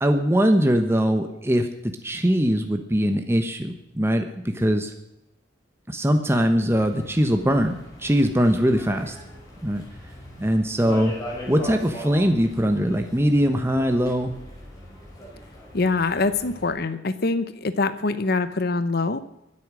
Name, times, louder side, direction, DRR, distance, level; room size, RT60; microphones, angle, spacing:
voice 1, 0.0-4.9 5.9-9.1 9.6-9.8 10.4-11.1 11.5-14.4, equal, 15° right, 5 dB, 1.1 m, -21 dB
sound 1, 6.7-16.7, equal, 20° left, 6.4 m, -40 dB
voice 2, 15.7-19.2, left 3 dB, 55° left, 12 dB, 0.9 m, -24 dB
23.5 x 8.6 x 6.2 m, 0.85 s
head